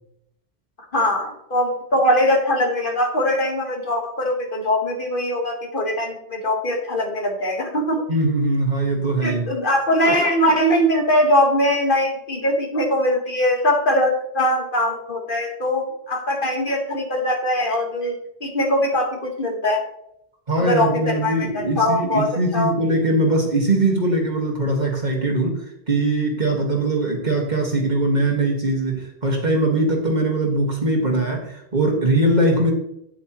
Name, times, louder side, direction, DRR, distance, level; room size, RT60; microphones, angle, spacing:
voice 1, 0.9-8.0 9.2-19.8 20.6-22.3 22.5-22.7, left 1 dB, 55° left, 2 dB, 1.8 m, -21 dB
voice 2, 8.1-9.5 20.5-32.7, right 1 dB, 45° right, 0 dB, 1.9 m, -21 dB
9.4 x 8.4 x 3.0 m, 0.78 s
omnidirectional pair, 1.1 m